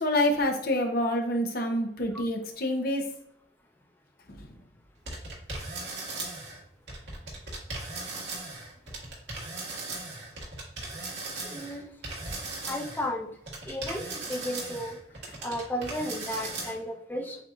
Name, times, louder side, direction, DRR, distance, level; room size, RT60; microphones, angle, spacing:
voice 1, 0.0-3.0, left 1 dB, 60° left, 3 dB, 0.8 m, -27 dB
sound 1, 5.1-6.6 6.9-13.1 13.5-16.7, right 2 dB, 80° right, 1.8 m, -38 dB
voice 2, 11.5-11.8 12.7-13.3 13.7-15.0 15.4-17.4, left 1 dB, 10° left, -1 dB, 0.7 m, -33 dB
7.6 x 2.8 x 2.4 m, 0.73 s
head